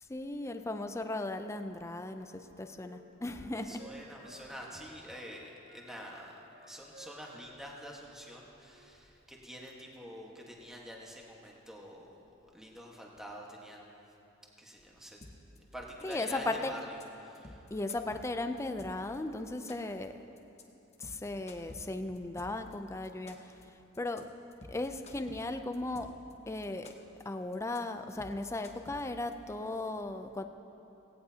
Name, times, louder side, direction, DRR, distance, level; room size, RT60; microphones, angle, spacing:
voice 1, 0.1-3.8 16.0-16.7 17.7-20.1 21.0-23.5 24.0-24.3 24.7-26.2 26.5-26.9 27.3-30.4, left 2 dB, 15° left, 7 dB, 0.4 m, -36 dB
Wind instrument woodwind instrument, 2.0-5.4 5.6-8.9, right 1 dB, 60° right, 2.0 m, -57 dB
voice 2, 3.5-12.2 12.5-14.0 14.6-15.2 15.7-17.7, equal, 5° right, -2 dB, 1.4 m, -47 dB
sound 1, 15.2-15.6 15.9-16.5 16.8-17.0 17.3-19.2 19.5-20.0 20.4-20.6 20.9-22.7 23.0-23.6 23.9-24.2 24.5-26.3 26.6-27.2 27.5-27.8 28.1-29.3, left 1 dB, 35° left, 1.0 m, -51 dB
17.5 x 17.0 x 2.8 m, 2.9 s
head